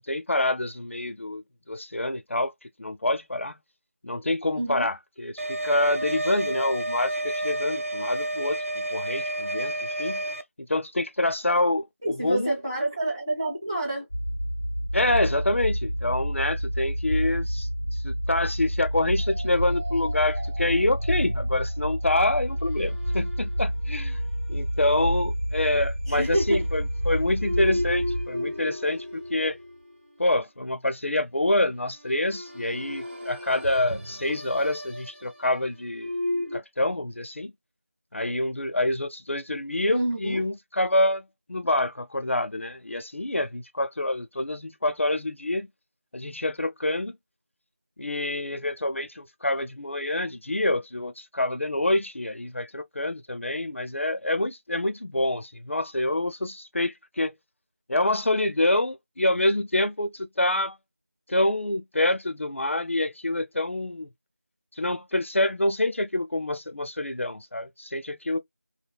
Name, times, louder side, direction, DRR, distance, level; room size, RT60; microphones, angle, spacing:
voice 1, 0.0-1.4 1.7-2.5 2.8-3.5 4.0-8.6 8.9-9.7 10.0-10.2 10.6-12.5 14.9-24.2 24.5-29.6 30.2-36.1 36.5-37.5 38.1-41.2 41.5-45.7 46.1-47.1 48.0-57.4 57.9-60.8 61.3-64.1 64.8-68.4, left 1 dB, 60° left, 0.4 m, -26 dB
voice 2, 4.6-4.9 12.0-14.1 26.1-26.6 39.9-40.4, right 1 dB, 20° right, 1.0 m, -28 dB
sound 1, 5.4-10.4, right 1 dB, 65° right, 0.4 m, -30 dB
sound 2, 14.1-28.3, equal, 25° left, 0.7 m, -29 dB
MS-Sagrera norm, 19.2-30.3 31.8-36.6, left 1 dB, 45° right, 1.4 m, -36 dB
3.4 x 2.1 x 2.2 m
figure-of-eight pair, 175°, 8 cm